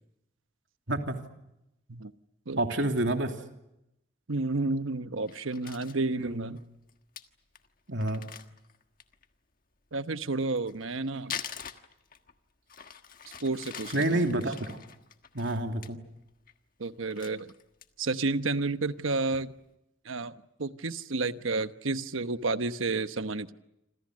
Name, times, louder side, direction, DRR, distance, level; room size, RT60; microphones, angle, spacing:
voice 1, 2.6-3.3 6.2-6.5 7.9-8.3 13.9-14.8 15.3-16.0, right 1 dB, 70° right, 4 dB, 2.9 m, -28 dB
voice 2, 4.3-6.6 9.9-11.4 13.4-14.3 16.8-17.5 18.0-19.5 20.0-23.5, right 3 dB, 90° right, 11 dB, 1.1 m, -31 dB
Crumpling crinkling, 5.3-6.0 6.6-6.7 6.9-7.0 7.2-7.3 7.6-7.7 8.0-9.3 10.4-12.3 12.7-15.9 16.3-16.6 16.9-18.1 18.5-18.6 19.0-19.4, left 8 dB, 45° left, 1.5 m, -44 dB
28.0 x 27.0 x 6.4 m, 0.86 s
head